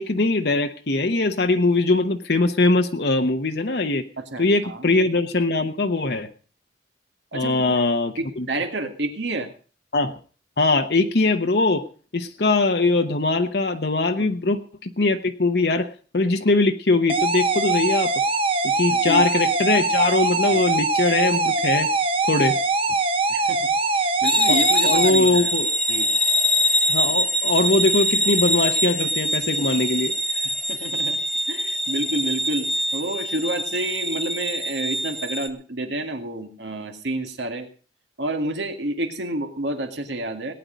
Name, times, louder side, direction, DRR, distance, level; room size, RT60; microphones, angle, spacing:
voice 1, 0.0-4.0 4.4-6.3 7.3-8.5 9.9-10.2 10.6-11.9 12.1-18.1 18.6-21.9 22.3-22.6 24.5-25.7 26.9-30.1, left 3 dB, 60° left, 5 dB, 1.0 m, -21 dB
voice 2, 4.2-4.9 7.3-7.8 8.2-9.5 14.2-14.3 18.9-19.2 20.5-20.6 23.3-25.5 25.9-26.1 30.3-31.2 31.5-37.7 38.2-40.5, right 1 dB, 80° right, 6 dB, 2.1 m, -29 dB
sound 1, 17.1-25.1, right 3 dB, 30° right, 1.0 m, -22 dB
sound 2, 24.2-35.5, equal, 5° left, 0.7 m, -24 dB
18.0 x 9.8 x 5.1 m, 0.39 s
head